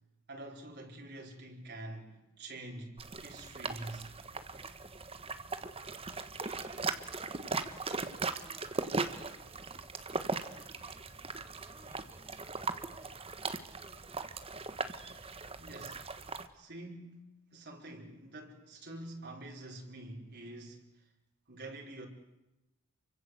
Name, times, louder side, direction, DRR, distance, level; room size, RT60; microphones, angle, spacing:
voice 1, 0.3-4.1 15.6-16.0 16.5-21.1 21.5-22.1, right 1 dB, 50° right, 5.1 m, -47 dB
sound 1, 3.0-16.5, right 3 dB, 25° right, 1.4 m, -39 dB
voice 2, 6.0-9.9 10.3-14.4, right 1 dB, 10° right, 4.7 m, -62 dB
29.5 x 24.5 x 8.1 m
head